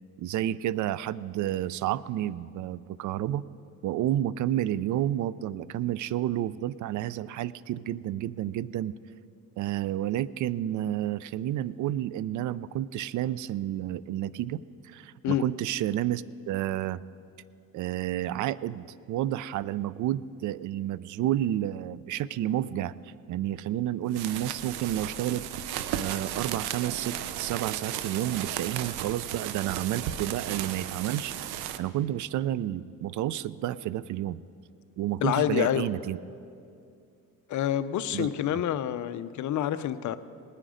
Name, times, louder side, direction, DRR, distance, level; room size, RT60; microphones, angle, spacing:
voice 1, 0.2-3.4 3.8-8.9 9.6-17.0 17.7-25.4 26.0-31.3 31.8-34.4 35.0-36.2 38.1-38.3, right 12 dB, 55° right, 19 dB, 0.4 m, -30 dB
sound 1, 24.1-31.8, right 11 dB, 85° right, 0.7 m, -35 dB
voice 2, 35.2-35.9 37.5-40.2, left 11 dB, 50° left, 12 dB, 0.6 m, -27 dB
19.5 x 9.9 x 5.0 m, 2.5 s
cardioid pair, 110°, 37 cm